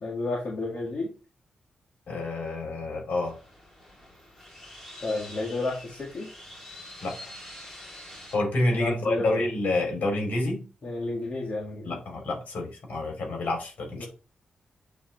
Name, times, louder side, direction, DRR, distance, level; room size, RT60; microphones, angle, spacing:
voice 1, 0.0-1.1 5.0-6.3 8.7-9.4 10.8-12.0 13.9-14.1, left 2 dB, 50° left, -4 dB, 1.9 m, -31 dB
voice 2, 2.1-3.3 7.0-7.2 8.3-10.6 11.8-14.1, left 2 dB, 65° left, 1 dB, 3.0 m, -28 dB
sound 1, 3.2-8.4, left 1 dB, 10° left, 3.2 m, -46 dB
8.5 x 4.1 x 3.3 m, 0.33 s
wide cardioid pair, 135°, 3 cm